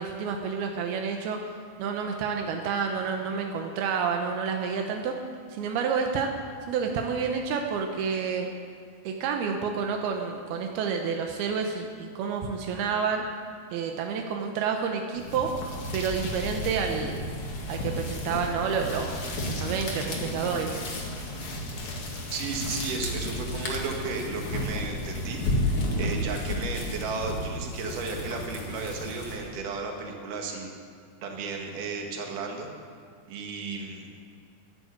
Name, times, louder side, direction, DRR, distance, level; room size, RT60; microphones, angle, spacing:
voice 1, 0.0-1.4 1.8-5.1 5.5-6.3 6.7-8.5 9.0-13.3 13.7-15.5 15.9-17.2 17.7-20.8, right 6 dB, 85° right, 3 dB, 2.9 m, -29 dB
sound 1, 15.1-29.6, left 1 dB, 45° left, 2.4 m, -32 dB
voice 2, 22.3-30.7 31.2-32.7 33.3-34.1, right 4 dB, 60° right, 1 dB, 3.1 m, -34 dB
13.5 x 11.0 x 8.3 m, 2.2 s
omnidirectional pair, 4.5 m